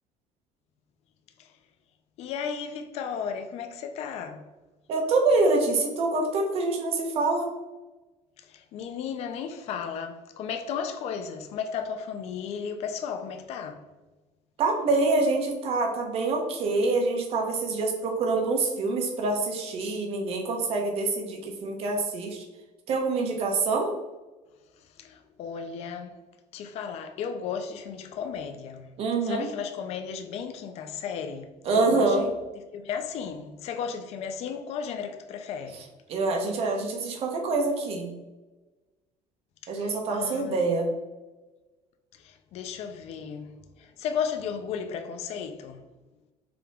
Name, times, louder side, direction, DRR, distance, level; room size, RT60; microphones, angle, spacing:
voice 1, 2.2-4.4 8.5-13.8 25.0-26.1 26.5-28.9 29.2-31.5 31.7-32.3 32.7-35.8 39.8-40.6 42.2-43.5 43.8-45.8, left 7 dB, 55° left, 0.5 m, -34 dB
voice 2, 4.9-7.5 14.6-22.4 22.9-23.9 29.0-29.5 31.6-32.3 35.7-38.1 39.7-40.9, right 3 dB, 50° right, 1.0 m, -26 dB
5.1 x 2.9 x 3.5 m
cardioid pair, 150°, 13 cm